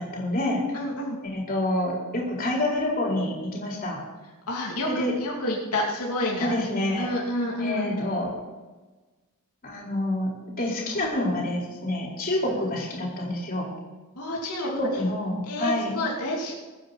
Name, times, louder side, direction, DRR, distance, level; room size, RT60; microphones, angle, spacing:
voice 1, 0.0-0.6 1.2-4.0 4.9-5.1 6.4-7.1 7.6-8.4 9.6-10.3 10.6-13.7 14.6-15.9, left 1 dB, 40° left, -3 dB, 4.4 m, -27 dB
voice 2, 0.7-1.2 4.5-6.6 7.0-7.9 12.4-12.6 14.1-15.0 15.5-16.5, left 1 dB, 90° left, -3 dB, 2.8 m, -29 dB
22.5 x 9.6 x 4.2 m, 1.2 s
head